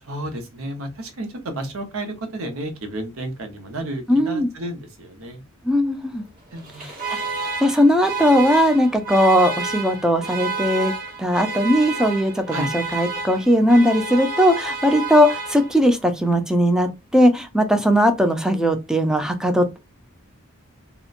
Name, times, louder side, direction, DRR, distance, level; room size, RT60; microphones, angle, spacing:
voice 1, 0.0-5.4 6.5-6.9 12.5-12.7, right 1 dB, 75° right, 0.8 m, -32 dB
voice 2, 4.1-4.5 5.6-6.2 6.8-7.2 7.6-10.9 11.2-19.8, equal, 5° right, 0.4 m, -18 dB
Alarm, 6.6-16.0, right 3 dB, 40° right, 1.0 m, -30 dB
2.9 x 2.1 x 2.4 m
head